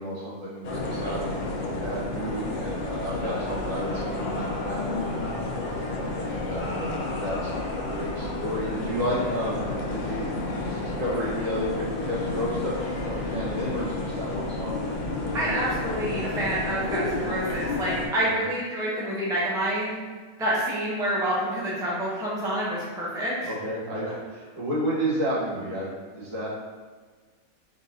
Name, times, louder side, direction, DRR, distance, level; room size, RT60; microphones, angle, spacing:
voice 1, 0.0-5.2 6.1-15.4 18.2-18.4 23.4-26.5, equal, 65° right, -7 dB, 1.5 m, -32 dB
sound 1, 0.6-18.1, left 2 dB, 65° left, 0.4 m, -31 dB
voice 2, 15.3-19.9 20.4-23.5, right 1 dB, 5° right, -6 dB, 0.5 m, -28 dB
3.9 x 3.7 x 2.7 m, 1.5 s
omnidirectional pair, 1.5 m